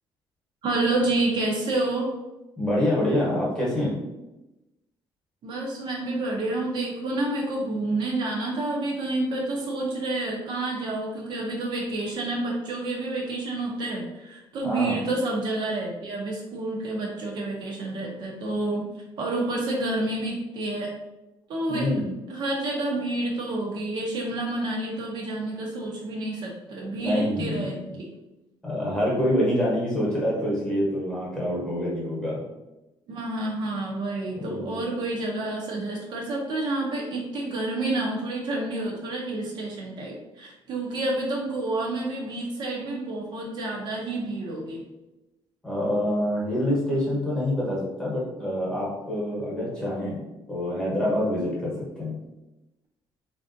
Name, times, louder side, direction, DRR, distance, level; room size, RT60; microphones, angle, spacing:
voice 1, 0.6-2.1 5.4-18.9 19.2-21.0 21.5-21.9 22.3-28.1 33.1-44.8, right 2 dB, 50° right, -1 dB, 0.5 m, -29 dB
voice 2, 2.6-4.0 14.6-15.0 21.7-22.1 26.9-27.7 28.6-32.4 34.3-34.8 45.6-50.2 50.5-52.2, left 1 dB, 10° left, -6 dB, 1.0 m, -26 dB
3.2 x 2.5 x 2.5 m, 1.0 s
cardioid pair, 165°, 10 cm